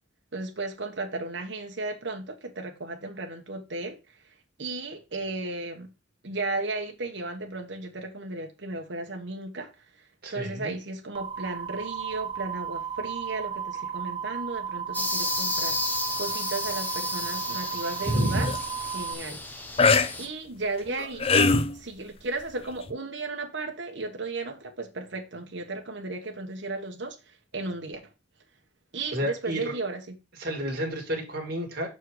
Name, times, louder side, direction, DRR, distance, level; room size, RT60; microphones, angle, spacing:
voice 1, 0.3-4.0 4.6-5.9 6.2-9.7 10.3-15.8 16.2-18.5 18.9-19.4 20.2-21.3 21.7-27.2 27.5-28.0 28.9-30.1, right 3 dB, 70° right, 1.2 m, -34 dB
voice 2, 10.2-10.8 18.0-18.5 29.1-29.7 30.4-32.0, equal, 55° right, 1.9 m, -30 dB
sound 1, 11.1-19.1, right 8 dB, 25° right, 0.5 m, -34 dB
sound 2, 14.9-20.3, left 2 dB, 10° left, 1.0 m, -32 dB
sound 3, 18.1-18.6 19.8-20.1 20.9-21.7 22.9-23.0, left 4 dB, 30° left, 0.5 m, -21 dB
6.3 x 4.5 x 4.7 m
head